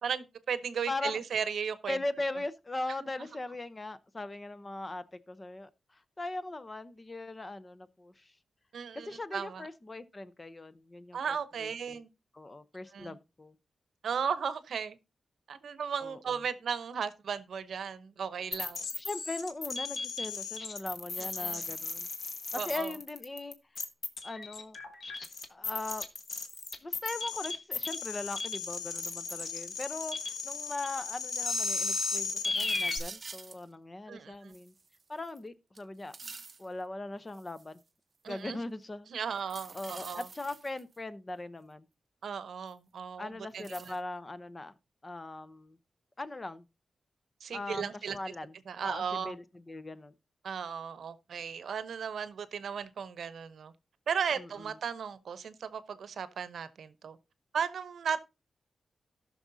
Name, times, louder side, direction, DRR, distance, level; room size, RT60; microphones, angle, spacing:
voice 1, 0.0-2.0 3.0-3.1 8.7-9.6 11.1-12.1 12.9-13.1 14.0-15.0 15.5-18.8 21.2-21.6 22.6-22.9 34.1-34.5 38.2-38.6 39.1-40.3 42.2-43.9 47.4-48.2 48.7-49.3 50.4-53.7 54.1-57.2 57.5-58.2, right 7 dB, 75° right, 0.8 m, -36 dB
voice 2, 0.9-1.2 1.9-8.3 8.9-12.0 12.3-13.5 16.0-16.4 18.9-22.1 22.5-23.6 24.2-24.8 25.5-26.1 26.8-34.7 35.1-36.2 36.6-37.8 38.3-39.1 39.7-41.9 43.2-44.7 45.0-45.8 46.2-46.6 47.5-48.6 48.8-50.1 54.4-54.8, left 2 dB, 20° left, 0.6 m, -40 dB
sound 1, 18.5-33.0, left 3 dB, 50° left, 1.3 m, -35 dB
sound 2, 32.4-33.6 34.5-35.4 35.8-36.7 37.3-37.8 39.4-41.0 42.7-42.8 43.6-44.0, right 4 dB, 35° right, 0.6 m, -47 dB
18.0 x 6.1 x 2.7 m
wide cardioid pair, 155°, 0 cm